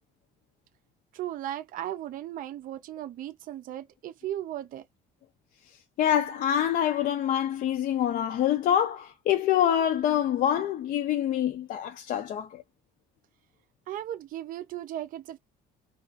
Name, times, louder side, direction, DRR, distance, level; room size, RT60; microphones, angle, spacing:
voice 1, 1.1-4.8 13.9-15.4, right 12 dB, 55° right, 0.4 m, -36 dB
voice 2, 6.0-12.6, left 10 dB, 55° left, 0.4 m, -26 dB
2.4 x 2.3 x 2.4 m
cardioid pair, 110°, 17 cm